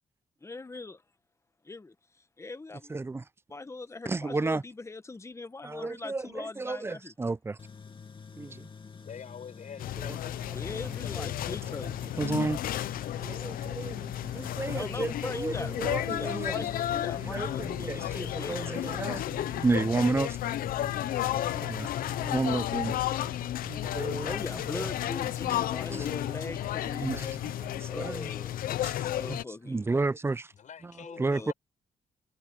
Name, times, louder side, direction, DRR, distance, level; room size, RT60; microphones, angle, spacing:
voice 1, 0.4-1.0 1.6-1.9 2.4-2.9 3.5-7.1 8.4-8.5 8.9-9.0 10.5-12.1 14.6-19.1 24.0-27.2 27.9-28.7 29.0-29.9 31.0-31.5, left 3 dB, 20° left, 1.2 m, -41 dB
voice 2, 2.9-3.2 4.1-4.6 5.6-7.6 8.4-8.7 11.2-11.3 12.2-12.6 13.1-14.1 14.3-16.7 17.2-20.3 21.6-23.0 23.6-24.4 24.7-24.9 25.9-26.1 27.0-28.3 28.8-28.9 29.3-29.4 29.7-30.5 31.2-31.5, right 3 dB, 15° right, 0.5 m, -32 dB
Tools, 7.6-14.9, left 5 dB, 35° left, 2.5 m, -48 dB
voice 3, 9.0-11.6 19.7-20.1 30.5-31.5, left 7 dB, 60° left, 6.4 m, -46 dB
sound 1, 9.8-29.4, left 13 dB, 80° left, 0.6 m, -33 dB
sound 2, 10.0-27.8, right 5 dB, 40° right, 8.0 m, -51 dB
cardioid pair, 90°, 15 cm